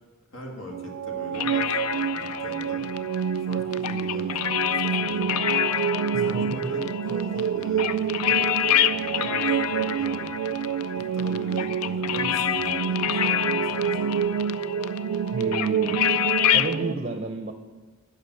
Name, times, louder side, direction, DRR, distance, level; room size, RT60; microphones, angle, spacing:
voice 1, 0.3-2.8 3.3-5.3 6.1-14.5, equal, 60° left, 0 dB, 2.0 m, -40 dB
sound 1, 0.7-16.9, right 8 dB, 85° right, 0.3 m, -28 dB
sound 2, 1.3-16.8, left 10 dB, 85° left, 0.4 m, -27 dB
voice 2, 6.1-6.7 15.3-16.0 16.5-17.5, right 2 dB, 30° right, 6 dB, 0.6 m, -31 dB
8.8 x 5.8 x 7.9 m, 1.4 s
head